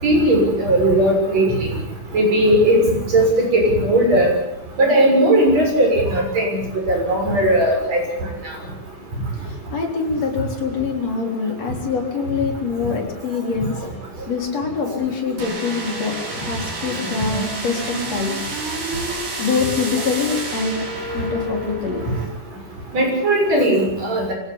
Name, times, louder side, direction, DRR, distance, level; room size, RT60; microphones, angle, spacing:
voice 1, 0.0-1.7 2.1-2.8 3.1-4.3 4.8-6.6 6.9-8.0 22.9-24.3, right 1 dB, 50° right, 1 dB, 7.9 m, -17 dB
voice 2, 9.5-13.7 14.3-18.4 19.4-20.8 21.1-22.0, left 5 dB, 50° left, 1 dB, 4.9 m, -24 dB
sound 1, 15.4-22.3, right 2 dB, 70° right, 6.1 m, -29 dB
23.5 x 18.0 x 8.7 m, 0.87 s
omnidirectional pair, 3.7 m